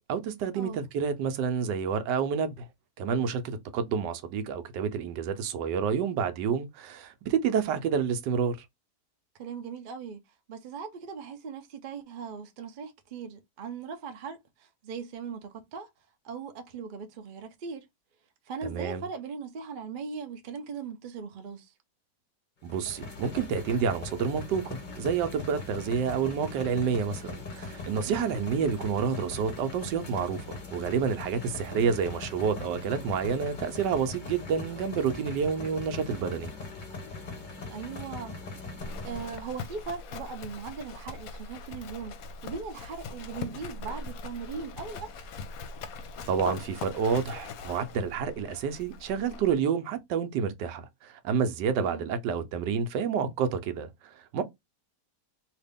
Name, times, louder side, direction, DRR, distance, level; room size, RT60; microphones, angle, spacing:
voice 1, 0.0-2.7 3.0-8.6 18.6-19.0 22.6-36.5 46.3-54.4, right 6 dB, 85° right, 1.3 m, -29 dB
voice 2, 9.4-10.2 10.5-15.9 16.2-17.8 18.5-21.7 28.1-28.4 37.7-38.3 39.0-45.3 51.7-52.1, right 5 dB, 65° right, 0.5 m, -39 dB
sound 1, 22.7-39.5, left 3 dB, 40° left, 0.7 m, -40 dB
Livestock farm animals working animals, 38.8-49.6, left 4 dB, 65° left, 1.0 m, -41 dB
2.9 x 2.8 x 3.4 m
omnidirectional pair, 1.8 m